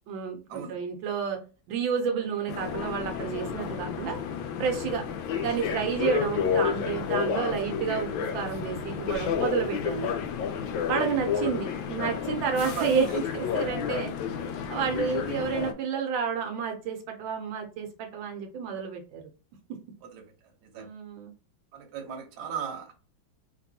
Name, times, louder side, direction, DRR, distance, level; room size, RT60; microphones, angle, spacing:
voice 1, 0.1-1.4 1.7-4.2 4.6-5.0 5.4-10.1 10.9-14.1 14.7-19.2 20.7-21.3, right 6 dB, 80° right, 3 dB, 1.4 m, -30 dB
sound 1, 2.5-15.7, left 7 dB, 85° left, 1.3 m, -31 dB
voice 2, 12.6-13.2 15.0-15.2 20.0-20.2 20.7-20.9 21.7-22.9, right 7 dB, 65° right, 3 dB, 1.3 m, -37 dB
3.5 x 2.9 x 2.7 m, 0.34 s
omnidirectional pair, 2.1 m